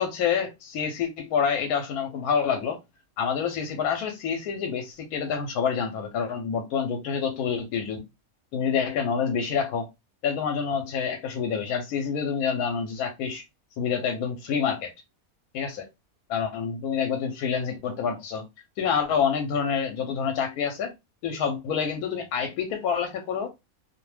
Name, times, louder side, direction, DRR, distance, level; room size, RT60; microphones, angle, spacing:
voice 1, 0.0-2.8 3.2-8.0 8.5-9.9 10.2-13.4 13.8-14.9 15.5-15.8 16.3-18.5 18.8-20.9 21.2-23.5, left 6 dB, 85° left, 1.1 m, -27 dB
2.6 x 2.1 x 3.1 m
omnidirectional pair, 1.5 m